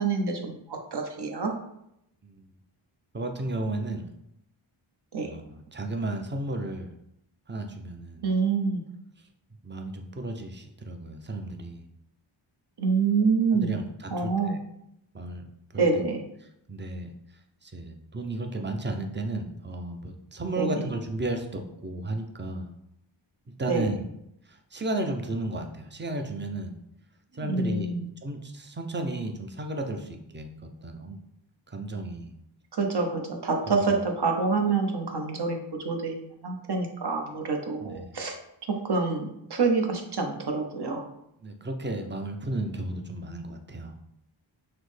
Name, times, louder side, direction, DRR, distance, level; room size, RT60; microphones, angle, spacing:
voice 1, 0.0-1.5 5.1-5.3 8.2-8.8 12.8-13.8 14.1-14.6 15.8-16.2 20.6-20.9 23.7-23.9 27.4-28.0 32.7-38.4 38.8-41.1, right 4 dB, 55° right, 3 dB, 0.9 m, -27 dB
voice 2, 3.1-4.0 5.2-6.9 7.5-8.2 9.6-11.8 13.5-14.6 15.1-15.4 15.7-16.0 16.7-17.1 17.6-22.7 23.5-24.1 24.7-26.7 27.3-27.9 28.2-31.2 31.7-32.3 33.8-34.0 37.8-38.1 41.4-43.9, right 2 dB, 25° right, 4 dB, 0.6 m, -33 dB
5.9 x 2.1 x 3.3 m, 0.79 s
cardioid pair, 55°, 49 cm